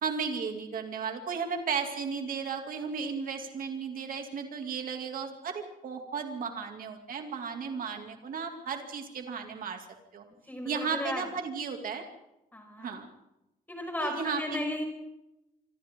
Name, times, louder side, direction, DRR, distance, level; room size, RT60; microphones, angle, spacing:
voice 1, 0.0-9.8 10.1-10.2 10.6-12.0 12.8-13.1 14.0-14.6, right 5 dB, 65° right, 4 dB, 2.8 m, -34 dB
voice 2, 10.5-11.3 12.5-13.0 13.7-14.8, left 1 dB, 10° left, 2 dB, 5.7 m, -35 dB
26.0 x 25.5 x 3.9 m, 0.91 s
wide cardioid pair, 165°, 15 cm